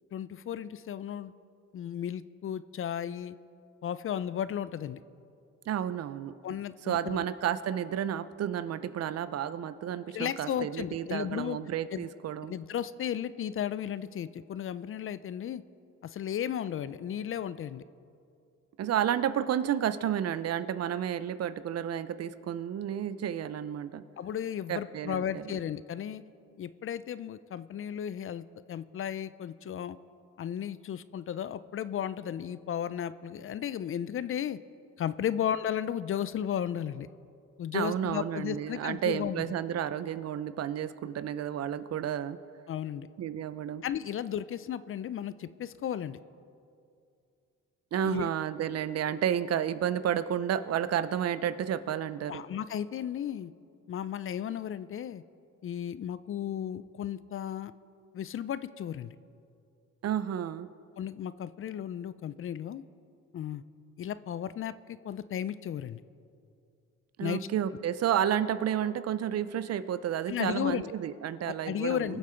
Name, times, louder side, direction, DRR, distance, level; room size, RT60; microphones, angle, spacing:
voice 1, 0.1-1.3 1.7-3.4 3.8-5.0 6.4-7.2 10.1-11.6 11.9-12.1 12.5-15.6 16.0-17.8 24.2-26.2 26.6-30.0 30.4-34.6 35.0-37.1 37.6-39.5 42.7-43.1 43.8-46.2 47.9-48.3 52.3-53.5 53.9-55.2 55.6-57.7 58.1-59.2 61.0-62.8 63.3-63.6 64.0-66.0 67.2-67.5 70.3-70.9 71.5-72.2, left 9 dB, 45° left, 16 dB, 0.4 m, -34 dB
voice 2, 5.7-6.3 6.9-12.5 18.8-24.0 24.7-25.4 37.7-42.4 43.2-43.8 47.9-52.4 60.0-60.7 67.2-72.2, right 9 dB, 55° right, 14 dB, 0.6 m, -31 dB
21.0 x 7.4 x 4.4 m, 2.5 s
cardioid pair, 90°, 30 cm